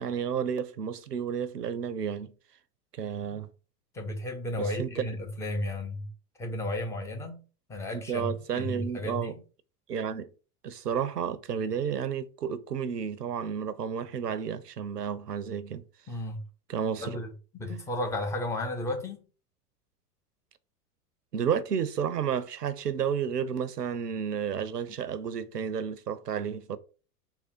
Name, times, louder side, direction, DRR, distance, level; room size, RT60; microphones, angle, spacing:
voice 1, 0.0-2.3 3.0-3.5 4.6-5.1 7.9-9.3 9.9-10.3 10.6-15.8 16.7-17.2 21.3-26.8, right 7 dB, 90° right, 0.6 m, -31 dB
voice 2, 3.9-6.1 6.4-7.4 7.7-9.4 16.1-16.4 17.0-19.2, left 1 dB, 5° left, 0.4 m, -34 dB
3.5 x 2.1 x 4.3 m
figure-of-eight pair, 90°, 47 cm